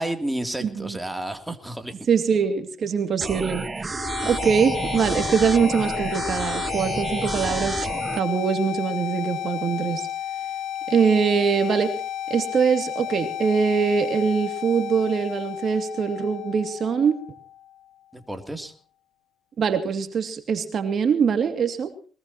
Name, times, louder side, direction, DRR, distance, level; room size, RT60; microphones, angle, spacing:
voice 1, 0.0-1.9 4.2-4.3 18.1-18.7, right 1 dB, 5° right, 6 dB, 3.0 m, -31 dB
voice 2, 0.6-1.0 2.1-10.1 10.9-11.9 12.3-17.2 19.6-21.9, right 6 dB, 55° right, 8 dB, 2.5 m, -23 dB
sound 1, 3.2-8.2, right 3 dB, 25° right, 0.9 m, -30 dB
sound 2, 3.9-17.8, left 11 dB, 75° left, 1.8 m, -32 dB
22.5 x 20.0 x 3.0 m, 0.41 s
cardioid pair, 90°, 0 cm